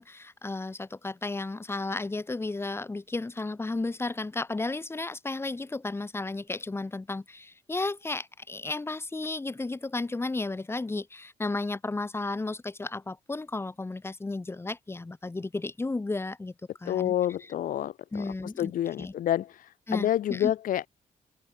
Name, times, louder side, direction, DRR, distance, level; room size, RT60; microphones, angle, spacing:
voice 1, 0.0-16.5 16.8-17.1 17.4-17.5 18.1-18.7 19.0-19.1 19.9-20.5, left 3 dB, 20° left, 5.5 m, -33 dB
voice 2, 16.9-18.2 18.6-19.5 19.9-20.9, left 11 dB, 90° left, 6.3 m, -28 dB
open air
cardioid pair, 135°, 14 cm